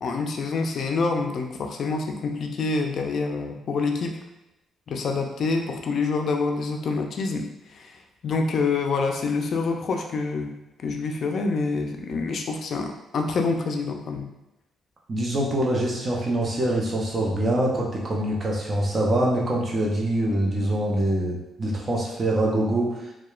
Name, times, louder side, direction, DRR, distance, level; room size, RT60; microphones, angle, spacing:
voice 1, 0.0-4.2 4.9-14.3, left 4 dB, 55° left, 4 dB, 0.3 m, -27 dB
voice 2, 15.1-22.9, right 1 dB, 35° right, -2 dB, 0.6 m, -24 dB
2.8 x 2.2 x 2.3 m, 0.96 s
cardioid pair, 90°, 0 cm